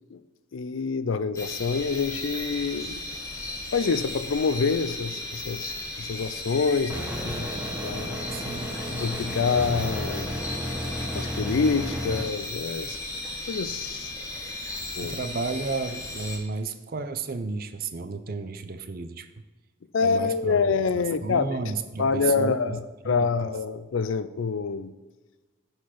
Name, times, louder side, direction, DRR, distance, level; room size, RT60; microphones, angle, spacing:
voice 1, 0.5-3.0 3.7-5.7 6.0-7.5 7.8-8.3 8.9-10.4 11.1-13.0 13.5-14.1 15.0-15.2 19.9-21.5 22.0-24.9, left 5 dB, 80° left, 14 dB, 0.5 m, -26 dB
sound 1, 1.4-16.4, left 2 dB, 15° left, 1.3 m, -36 dB
sound 2, 6.9-12.2, equal, 5° right, 1.2 m, -33 dB
voice 2, 8.3-8.7 15.0-19.3 20.0-20.7 21.0-22.8 23.0-23.3, right 4 dB, 50° right, 10 dB, 0.5 m, -32 dB
9.4 x 4.6 x 5.8 m, 1.2 s
head